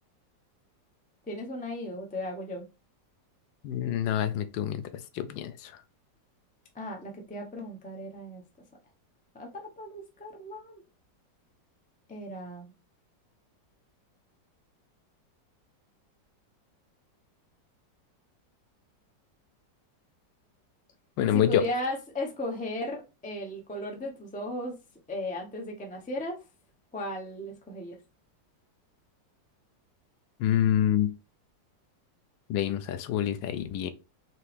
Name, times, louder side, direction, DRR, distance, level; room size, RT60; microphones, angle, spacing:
voice 1, 1.3-2.6 6.7-8.4 9.3-10.8 12.1-12.7 21.3-24.7 25.1-26.4 26.9-28.0, left 1 dB, 10° left, 0.3 m, -36 dB
voice 2, 3.6-4.8 5.1-5.7 21.2-21.6 30.4-31.1 32.5-33.9, left 10 dB, 80° left, 1.2 m, -26 dB
4.6 x 2.9 x 3.2 m
omnidirectional pair, 2.0 m